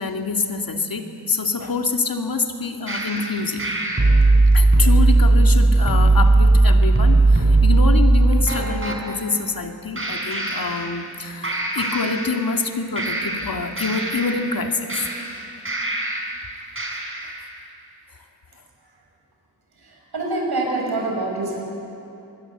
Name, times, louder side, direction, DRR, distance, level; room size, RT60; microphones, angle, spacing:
voice 1, 0.0-3.7 4.5-15.0, left 4 dB, 60° left, 5 dB, 2.2 m, -26 dB
sound 1, 2.9-9.0 10.0-11.2 11.4-12.7 13.0-16.4 16.8-17.4, right 2 dB, 30° right, 5.1 m, -18 dB
voice 2, 19.8-21.6, right 2 dB, 75° right, -1 dB, 6.7 m, -26 dB
25.0 x 21.5 x 8.0 m, 2.8 s
cardioid pair, 55°, 39 cm